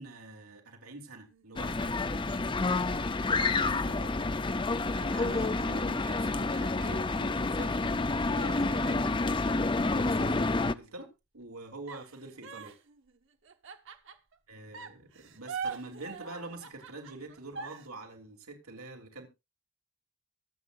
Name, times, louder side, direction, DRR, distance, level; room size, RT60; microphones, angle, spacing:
voice 1, 0.0-3.0 3.2-4.3 4.9-7.8 8.3-9.2 9.9-12.7 14.5-19.3, right 2 dB, 85° right, 2 dB, 3.0 m, -45 dB
sound 1, 1.2-2.6 3.3-5.5 6.0-6.1 6.4-8.5 8.9-10.9 11.9-14.4 14.7-17.9, right 5 dB, 60° right, 1.4 m, -45 dB
sound 2, 1.6-10.7, left 3 dB, 20° left, 0.5 m, -29 dB
23.5 x 8.1 x 2.5 m, 0.26 s
head